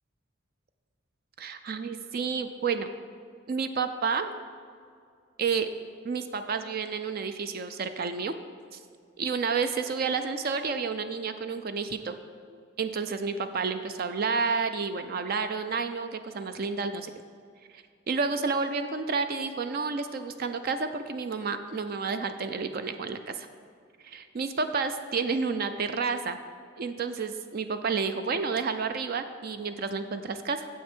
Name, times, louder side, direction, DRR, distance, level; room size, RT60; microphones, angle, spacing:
voice 1, 1.4-2.9 3.5-4.3 5.4-5.7 6.0-8.3 9.2-12.2 12.5-17.1 17.7-23.5 24.0-26.4 26.8-30.7, right 5 dB, 45° right, 9 dB, 0.4 m, -30 dB
9.1 x 7.5 x 4.4 m, 2.2 s
head